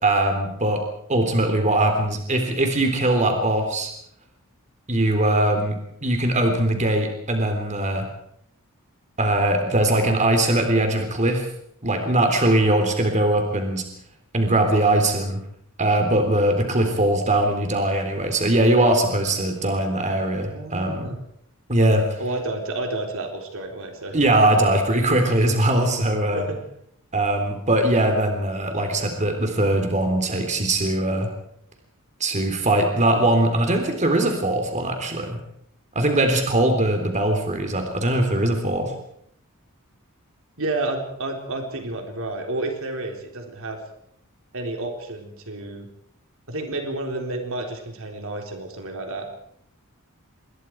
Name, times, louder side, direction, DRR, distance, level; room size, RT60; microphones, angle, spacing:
voice 1, 0.0-0.8 1.1-3.9 4.9-8.1 9.2-11.5 11.8-13.8 14.3-15.4 15.8-21.1 21.7-22.1 24.1-26.5 27.1-31.3 32.2-35.4 36.0-38.9, right 1 dB, 35° right, 5 dB, 3.6 m, -21 dB
voice 2, 20.5-21.2 22.2-24.2 26.3-26.6 40.6-43.8 44.5-45.9 46.5-49.3, right 2 dB, 65° right, 3 dB, 3.9 m, -30 dB
27.5 x 22.0 x 4.8 m, 0.69 s
head